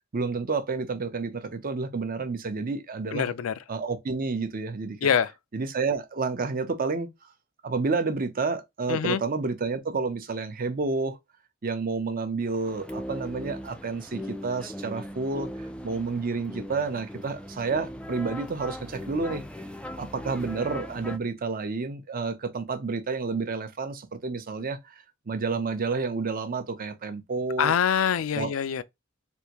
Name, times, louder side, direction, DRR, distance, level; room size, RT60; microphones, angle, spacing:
voice 1, 0.1-3.3 3.7-5.0 5.5-7.1 7.6-11.2 11.6-19.4 20.0-24.9 25.3-27.7 28.4-28.5, right 4 dB, 45° right, 0.6 m, -30 dB
voice 2, 3.1-3.5 5.0-5.3 8.9-9.2 27.6-28.8, left 8 dB, 85° left, 0.4 m, -24 dB
sound 1, 12.4-21.2, equal, 5° left, 0.4 m, -39 dB
3.5 x 2.6 x 2.9 m
head